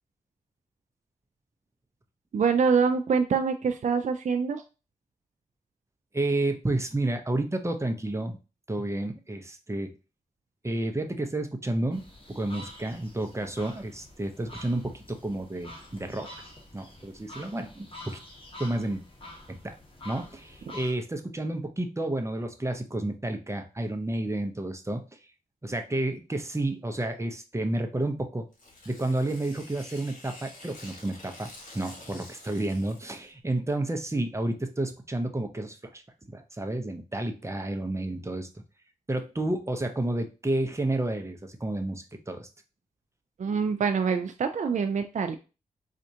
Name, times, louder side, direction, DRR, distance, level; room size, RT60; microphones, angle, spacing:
voice 1, 2.3-4.6 43.4-45.4, right 5 dB, 60° right, 6 dB, 0.4 m, -25 dB
voice 2, 6.1-8.4 8.7-9.9 10.6-16.3 16.7-18.2 18.6-19.0 19.5-19.7 20.0-25.2 25.6-28.5 28.9-31.5 31.7-36.0 36.3-38.5 39.1-42.5, right 1 dB, 20° right, 6 dB, 0.7 m, -31 dB
sound 1, 11.9-20.9, left 1 dB, 40° left, 1.2 m, -47 dB
Tearing, 28.5-33.3, left 2 dB, 65° left, 1.3 m, -48 dB
4.2 x 2.5 x 2.7 m, 0.31 s
cardioid pair, 55°, 15 cm